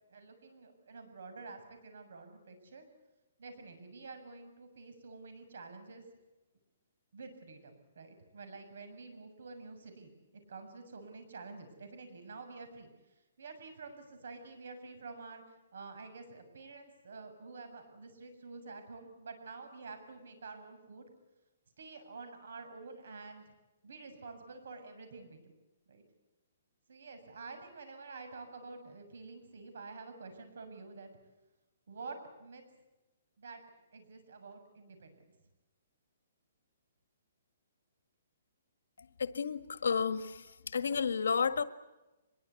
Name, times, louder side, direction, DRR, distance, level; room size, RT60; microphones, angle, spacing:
voice 1, 0.1-2.9 3.4-6.0 7.1-10.2 10.5-15.4 15.7-21.1 21.8-23.4 23.8-25.5 25.9-26.0 26.9-31.1 31.9-32.6 33.4-33.6 33.9-35.2, right 4 dB, 70° right, 8 dB, 7.1 m, -49 dB
voice 2, 39.2-41.6, left 6 dB, 85° left, 12 dB, 1.6 m, -32 dB
24.5 x 22.0 x 8.4 m, 1.1 s
hypercardioid pair, 170°, 0 cm